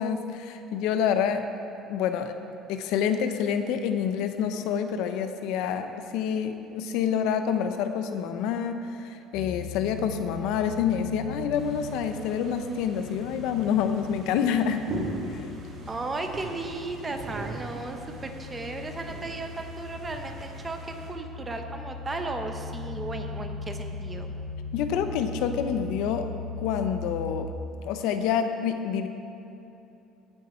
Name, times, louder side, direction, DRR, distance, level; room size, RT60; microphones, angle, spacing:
voice 1, 0.0-1.5 1.9-2.3 2.7-14.8 15.3-15.5 24.7-26.3 26.6-27.5 27.8-29.1, left 8 dB, 75° left, 8 dB, 0.8 m, -27 dB
sound 1, 9.3-27.5, left 3 dB, 15° left, 2.0 m, -39 dB
sound 2, 11.5-21.1, right 2 dB, 40° right, 2.2 m, -41 dB
voice 2, 15.9-24.3, right 3 dB, 20° right, 5 dB, 0.9 m, -35 dB
16.5 x 8.1 x 4.4 m, 2.9 s
cardioid pair, 150°, 0 cm